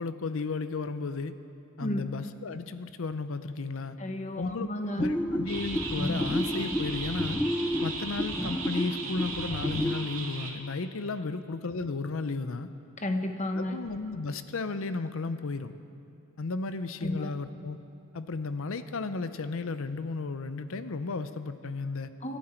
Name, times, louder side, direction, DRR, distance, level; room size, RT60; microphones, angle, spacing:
voice 1, 0.0-1.3 1.8-4.0 4.4-4.7 5.0-7.4 7.8-12.7 13.5-15.7 16.4-17.8 18.1-22.1, left 3 dB, 65° left, 11 dB, 0.6 m, -34 dB
voice 2, 1.8-2.1 4.0-5.1 13.0-13.8 17.0-17.3 22.2-22.4, left 1 dB, 35° left, 6 dB, 1.1 m, -32 dB
sound 1, 5.0-10.0, left 1 dB, 10° left, 0.5 m, -31 dB
sound 2, 5.5-10.5, right 4 dB, 90° right, 2.1 m, -37 dB
26.5 x 11.5 x 4.5 m, 2.5 s
head